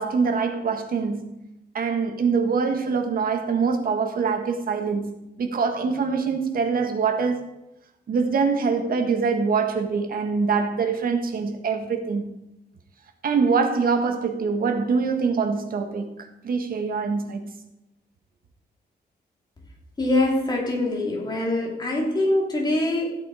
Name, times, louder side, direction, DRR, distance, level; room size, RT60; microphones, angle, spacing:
voice 1, 0.0-1.4 1.7-7.5 8.1-12.3 13.2-17.4, right 5 dB, 55° right, 1.6 m, -24 dB
voice 2, 20.0-23.1, left 1 dB, 25° left, 3.1 m, -23 dB
15.0 x 8.4 x 4.9 m
wide cardioid pair, 175°, 18 cm